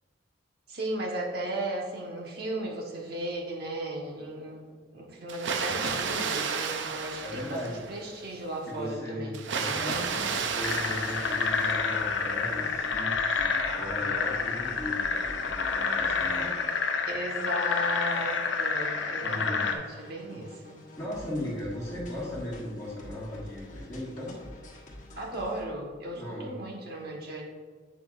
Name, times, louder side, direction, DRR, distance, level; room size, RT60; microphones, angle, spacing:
voice 1, 0.7-4.7 4.9-7.6 7.9-9.4 17.1-20.8 25.2-27.4, right 1 dB, 55° right, -1 dB, 1.2 m, -35 dB
Water, 5.3-8.1 9.3-12.2, right 5 dB, 70° right, 0.5 m, -32 dB
voice 2, 7.2-7.8 8.7-16.6 19.2-19.7 20.3-20.4 21.0-24.3 26.1-26.6, left 1 dB, 15° left, -11 dB, 1.8 m, -37 dB
sound 1, 10.0-25.6, equal, 40° left, 1.4 m, -48 dB
sound 2, 10.6-19.7, left 5 dB, 70° left, 0.7 m, -29 dB
8.4 x 6.2 x 2.5 m, 1.5 s
head